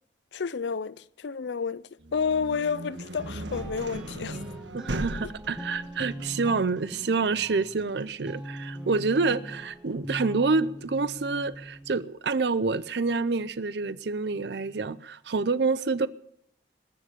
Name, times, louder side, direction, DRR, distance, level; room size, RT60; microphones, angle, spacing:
voice 1, 0.3-1.8 2.1-4.4 5.2-5.3, left 5 dB, 75° left, 0.5 m, -30 dB
sound 1, 2.0-11.8, right 1 dB, 85° right, 1.5 m, -39 dB
sound 2, 3.2-12.0, right 1 dB, 5° right, 1.3 m, -41 dB
voice 2, 4.7-16.1, right 4 dB, 65° right, 0.5 m, -27 dB
20.5 x 7.4 x 8.5 m
head